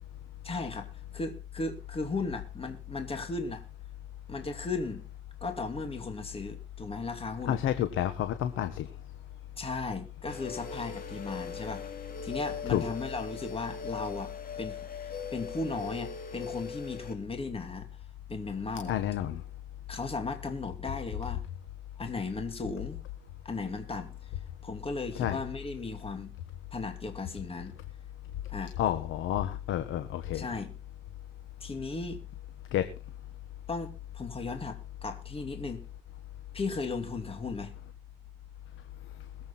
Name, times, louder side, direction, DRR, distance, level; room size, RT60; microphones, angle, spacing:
voice 1, 0.4-3.6 4.3-5.0 5.4-7.6 9.6-14.3 14.6-14.8 15.0-17.9 18.3-19.0 19.9-21.4 22.0-23.0 23.4-24.3 24.6-26.3 26.7-27.7 28.5-28.8 30.3-30.7 31.6-32.2 33.7-35.8 36.5-37.7, left 3 dB, 30° left, 6 dB, 2.6 m, -36 dB
voice 2, 7.5-8.9 12.7-12.8 18.9-19.4 25.1-25.4 28.8-30.5 32.7-32.9, left 11 dB, 85° left, 9 dB, 1.3 m, -29 dB
sound 1, 10.3-17.1, left 5 dB, 45° left, 3.4 m, -40 dB
21.5 x 8.2 x 4.3 m, 0.32 s
cardioid pair, 90°, 20 cm